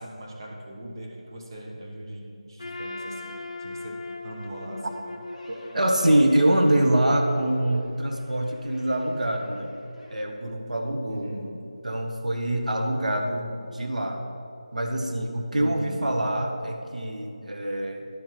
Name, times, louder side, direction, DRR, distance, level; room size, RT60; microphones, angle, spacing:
voice 1, 0.0-3.3 3.6-5.1 11.1-11.5 15.6-16.0, right 1 dB, 35° right, -1 dB, 1.0 m, -40 dB
Trumpet, 2.6-7.7, left 2 dB, 45° left, 0.8 m, -40 dB
sound 1, 5.3-10.1, equal, ahead, 0.8 m, -47 dB
voice 2, 5.5-9.7 10.1-11.3 11.8-14.2 14.7-18.1, right 1 dB, 85° right, 3 dB, 1.2 m, -25 dB
12.0 x 4.6 x 5.8 m, 2.7 s
figure-of-eight pair, 175°, 4 cm